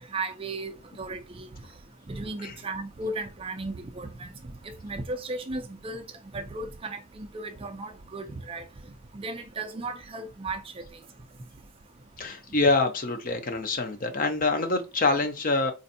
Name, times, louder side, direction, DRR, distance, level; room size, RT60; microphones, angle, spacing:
voice 1, 0.1-0.7 1.0-1.5 2.1-4.3 4.6-6.0 6.3-8.6 9.1-10.8, right 2 dB, 25° right, 0.4 m, -35 dB
voice 2, 12.2-15.7, left 3 dB, 40° left, 0.6 m, -25 dB
4.2 x 2.5 x 2.6 m
head